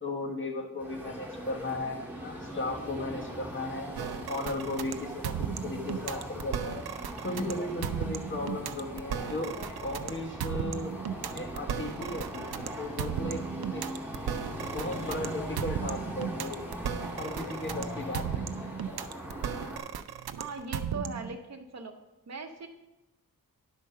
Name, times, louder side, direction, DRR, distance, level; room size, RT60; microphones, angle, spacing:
voice 1, 0.0-3.9 4.3-6.8 7.2-9.5 9.8-10.9 11.3-13.4 13.7-13.8 14.7-16.6 17.1-18.6, left 2 dB, 30° left, 1 dB, 1.2 m, -36 dB
sound 1, 0.8-19.8, equal, 5° right, 1.8 m, -40 dB
sound 2, 3.9-21.4, right 8 dB, 85° right, 0.5 m, -36 dB
voice 2, 20.4-21.9 22.3-22.7, right 3 dB, 45° right, 4 dB, 0.9 m, -39 dB
10.5 x 4.5 x 5.6 m, 1.0 s
wide cardioid pair, 155°, 36 cm